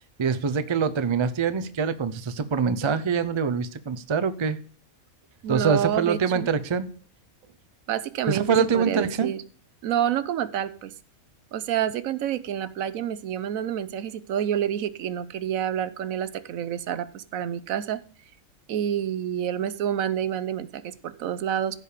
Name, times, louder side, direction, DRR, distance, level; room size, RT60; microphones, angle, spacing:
voice 1, 0.2-4.6 5.5-6.9 8.3-9.3, right 6 dB, 40° right, 12 dB, 0.4 m, -24 dB
voice 2, 5.4-6.5 7.9-9.4 9.8-10.9 11.5-18.0 18.7-21.8, right 10 dB, 75° right, 14 dB, 1.1 m, -28 dB
15.0 x 5.1 x 4.9 m, 0.43 s
omnidirectional pair, 1.5 m